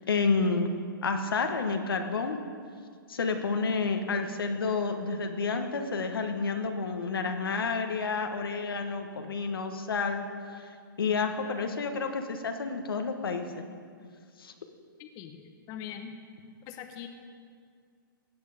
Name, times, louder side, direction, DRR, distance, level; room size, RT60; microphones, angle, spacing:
voice 1, 0.1-0.7 1.0-2.4 3.1-10.7 11.0-13.6 14.4-14.5, left 4 dB, 80° left, 5 dB, 1.3 m, -30 dB
voice 2, 15.0-16.2 16.7-17.1, left 9 dB, 30° left, 5 dB, 1.0 m, -42 dB
16.0 x 9.5 x 5.0 m, 2.1 s
hypercardioid pair, 130°, 12 cm